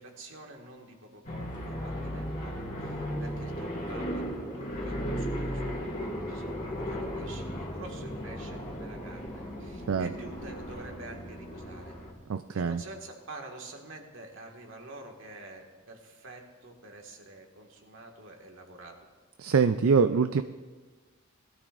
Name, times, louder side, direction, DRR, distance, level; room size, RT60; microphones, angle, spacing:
voice 1, 0.0-2.5 2.8-5.7 6.3-12.0 12.5-19.0, right 2 dB, 65° right, 2 dB, 1.9 m, -47 dB
sound 1, 1.2-12.1, equal, 40° left, 2.2 m, -36 dB
voice 2, 12.3-12.8 19.4-20.4, right 5 dB, 85° right, 10 dB, 0.4 m, -24 dB
21.0 x 13.0 x 2.6 m, 1.3 s
head